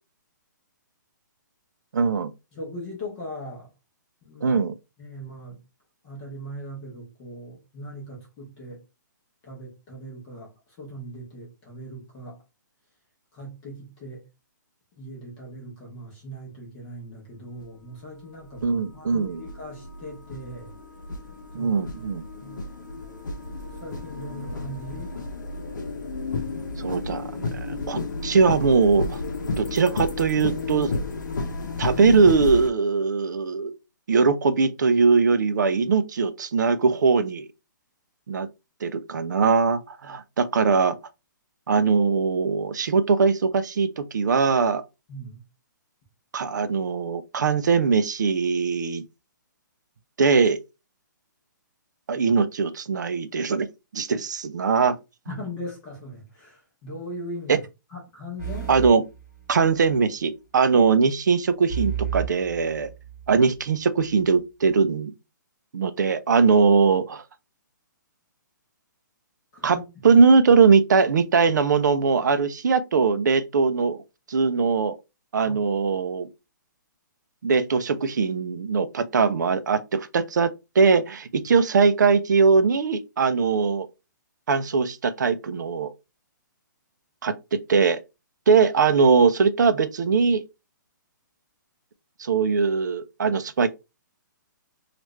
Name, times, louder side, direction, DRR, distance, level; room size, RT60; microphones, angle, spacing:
voice 1, 1.9-2.3 4.4-4.7 18.6-19.4 21.5-22.2 26.8-29.2 29.6-30.9 31.8-33.7 34.1-37.5 38.3-38.5 38.8-40.9 41.7-44.8 46.3-49.0 50.2-50.6 52.1-53.7 53.9-55.0 57.5-57.6 58.7-59.0 59.5-62.9 63.3-65.1 65.7-67.2 69.6-69.8 70.0-74.0 74.3-75.0 75.3-76.3 77.4-83.9 84.5-85.9 87.2-88.0 88.5-90.4 92.2-93.7, right 5 dB, 65° right, 0.5 m, -21 dB
voice 2, 2.5-3.7 4.2-4.6 5.0-5.6 6.0-8.8 9.4-12.4 13.3-14.3 15.0-20.7 21.6-21.8 22.4-22.6 23.7-25.2 45.1-45.4 55.3-58.7 69.5-69.8 75.4-75.6, equal, 15° left, 0.8 m, -39 dB
sound 1, 17.6-17.7 18.4-32.7, left 3 dB, 65° left, 0.8 m, -32 dB
sound 2, 58.4-60.0 61.7-63.4, right 9 dB, 10° right, 1.2 m, -33 dB
3.1 x 2.5 x 3.1 m
hypercardioid pair, 175°, 11 cm